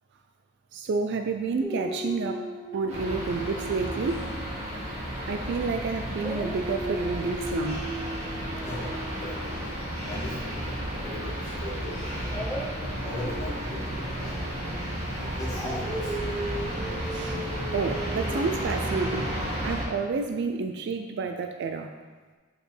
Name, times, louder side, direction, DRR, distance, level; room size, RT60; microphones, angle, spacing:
voice 1, 0.7-2.4 2.7-4.3 5.3-7.8 17.0-19.3 19.6-21.9, right 4 dB, 50° right, 6 dB, 0.3 m, -30 dB
Dog, 1.6-5.8 6.2-11.2 12.3-19.2, right 1 dB, 5° left, 0.6 m, -38 dB
sound 1, 2.9-19.8, equal, 30° right, 1.9 m, -33 dB
voice 2, 8.6-9.7 10.0-12.4 13.0-14.4 15.2-16.3, left 1 dB, 35° left, -7 dB, 1.7 m, -39 dB
6.4 x 4.9 x 3.3 m, 1.4 s
head